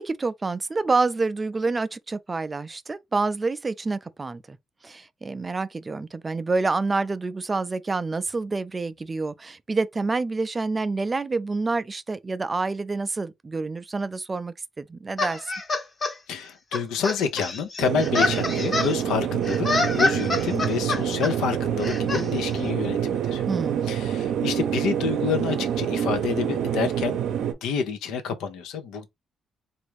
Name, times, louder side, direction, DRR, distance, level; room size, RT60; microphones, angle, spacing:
voice 1, 0.0-4.6 4.8-15.4 23.5-23.9, right 3 dB, 25° right, 0.3 m, -27 dB
sound 1, 15.2-16.1 16.7-18.9 19.5-21.3 21.8-22.2, left 3 dB, 35° left, 0.9 m, -26 dB
voice 2, 16.3-23.4 23.9-27.2 27.6-29.1, left 6 dB, 85° left, 0.6 m, -28 dB
sound 2, 17.8-27.5, right 9 dB, 80° right, 0.6 m, -26 dB
3.3 x 2.5 x 3.1 m
cardioid pair, 90°, 0 cm